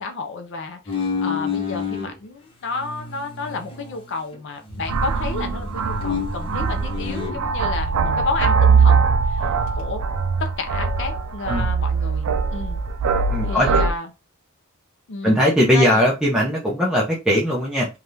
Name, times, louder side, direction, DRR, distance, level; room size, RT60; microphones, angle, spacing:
voice 1, 0.0-9.5 9.7-10.0 10.4-12.8 13.4-14.1 15.1-15.4 15.7-16.0, left 3 dB, 55° left, 0.5 m, -31 dB
sound 1, 0.9-2.1 2.6-4.4 4.7-7.4, left 5 dB, 25° left, 0.8 m, -30 dB
sound 2, 4.7-10.2, equal, 85° left, 0.9 m, -37 dB
sound 3, 4.9-13.9, right 5 dB, 80° right, 0.4 m, -21 dB
voice 2, 13.3-13.9 15.2-17.9, equal, 5° right, 0.5 m, -19 dB
3.4 x 2.3 x 2.7 m
head